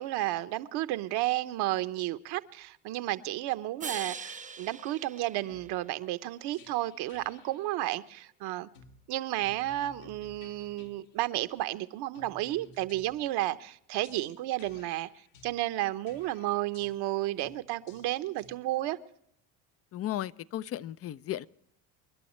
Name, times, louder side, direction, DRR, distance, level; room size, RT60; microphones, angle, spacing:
voice 1, 0.0-8.7 9.1-15.1 15.4-19.0, right 16 dB, 60° right, 1.0 m, -32 dB
sound 1, 3.8-6.1, right 5 dB, 15° right, 0.8 m, -42 dB
sound 2, 5.4-5.8 6.5-7.7 8.7-9.0 9.4-11.0 12.1-13.4 14.0-15.6 16.1-17.0 17.4-17.6 17.9-18.6, left 4 dB, 75° left, 2.2 m, -56 dB
voice 2, 19.9-21.5, left 12 dB, 35° left, 0.5 m, -35 dB
28.5 x 11.5 x 3.1 m
supercardioid pair, 95°, 43 cm